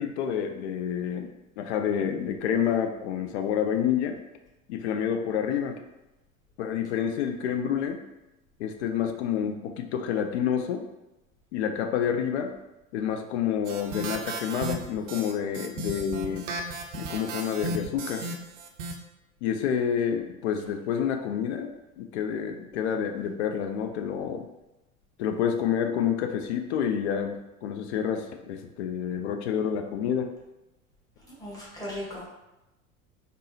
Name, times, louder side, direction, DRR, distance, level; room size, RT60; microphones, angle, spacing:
voice 1, 0.0-4.2 4.7-5.7 6.6-8.0 8.6-10.8 11.5-12.5 12.9-16.5 16.9-18.2 19.4-24.5 25.2-30.3, left 8 dB, 55° left, 5 dB, 0.5 m, -28 dB
sound 1, 13.6-19.0, right 2 dB, 60° right, 0.5 m, -35 dB
voice 2, 31.2-32.3, left 1 dB, 10° left, -7 dB, 1.1 m, -37 dB
3.5 x 2.0 x 2.7 m, 0.98 s
figure-of-eight pair, 80°, 42 cm